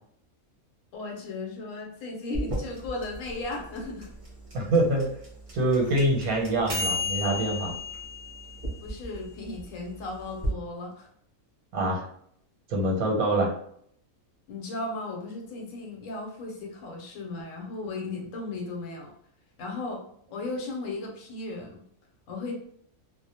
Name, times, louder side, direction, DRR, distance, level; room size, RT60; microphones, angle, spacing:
voice 1, 0.9-4.1 8.8-11.1 14.5-19.1 19.6-20.0 20.3-21.8 22.3-22.5, left 3 dB, 70° left, 1 dB, 1.0 m, -36 dB
sound 1, 2.3-10.5, left 2 dB, 40° right, 0.5 m, -34 dB
voice 2, 4.5-5.1 5.5-7.7 11.7-12.0 12.7-13.5, right 1 dB, 90° right, -1 dB, 1.1 m, -25 dB
2.3 x 2.1 x 2.7 m, 0.66 s
omnidirectional pair, 1.5 m